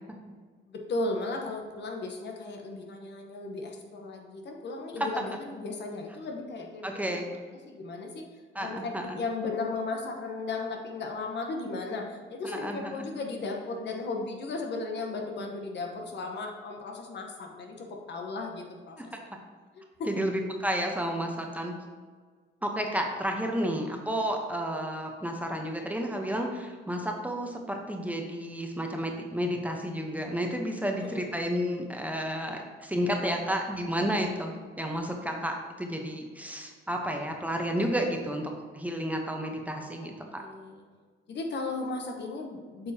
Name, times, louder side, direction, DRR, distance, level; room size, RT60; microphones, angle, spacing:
voice 1, 0.7-7.4 7.7-8.2 8.6-19.1 19.7-20.1 31.0-31.3 40.0-40.8 41.3-42.9, left 3 dB, 60° left, 2 dB, 1.1 m, -36 dB
voice 2, 6.8-7.3 8.5-9.2 12.4-12.9 19.0-19.1 20.1-21.7 22.6-40.1, equal, 5° right, 2 dB, 0.9 m, -31 dB
8.3 x 5.2 x 2.9 m, 1.5 s
cardioid pair, 90°, 20 cm